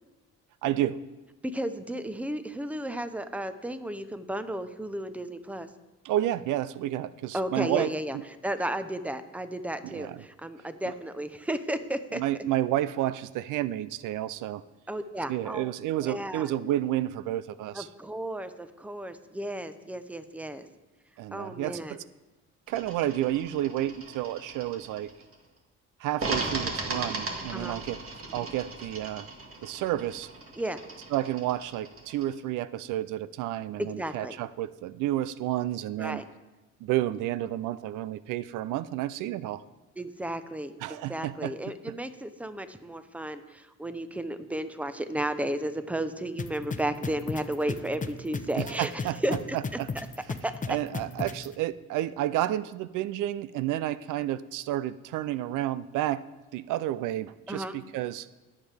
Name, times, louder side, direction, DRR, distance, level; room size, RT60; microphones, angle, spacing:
voice 1, 0.6-1.0 6.0-7.9 9.8-10.2 12.1-14.6 15.3-17.9 21.2-22.0 22.7-25.1 26.0-28.0 28.3-29.3 29.6-30.3 31.1-36.2 36.8-39.6 40.8-41.7 48.6-49.2 49.5-49.9 50.7-56.2 56.5-58.3, right 13 dB, 90° right, 16 dB, 0.5 m, -30 dB
voice 2, 1.4-5.7 7.3-8.2 8.4-12.2 14.9-15.7 16.0-16.5 17.7-20.7 21.3-22.0 27.5-27.8 30.6-30.8 33.8-34.4 36.0-36.2 40.0-49.6 50.4-50.5 57.5-57.8, right 1 dB, 5° right, 10 dB, 0.8 m, -33 dB
sound 1, 22.7-25.3 26.2-32.3, right 3 dB, 45° right, 2.1 m, -37 dB
sound 2, 46.4-51.5, left 5 dB, 25° left, 0.8 m, -33 dB
20.0 x 7.4 x 3.4 m, 1.1 s
cardioid pair, 90°, 30 cm